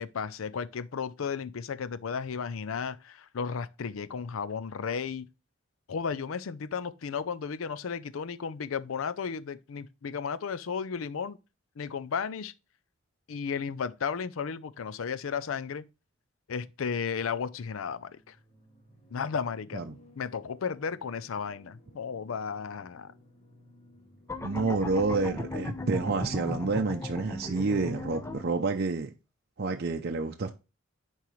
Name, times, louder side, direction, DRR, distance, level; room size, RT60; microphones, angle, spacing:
voice 1, 0.0-5.3 5.9-11.4 11.8-12.5 13.3-15.9 16.5-18.4 19.1-19.9 20.2-23.1, left 6 dB, 85° left, 0.5 m, -34 dB
sound 1, 17.3-27.3, left 1 dB, 35° left, 2.0 m, -59 dB
sound 2, 24.3-28.5, left 2 dB, 15° left, 0.5 m, -37 dB
voice 2, 24.4-29.1 29.6-30.5, right 3 dB, 55° right, 0.6 m, -29 dB
10.5 x 4.6 x 3.1 m
head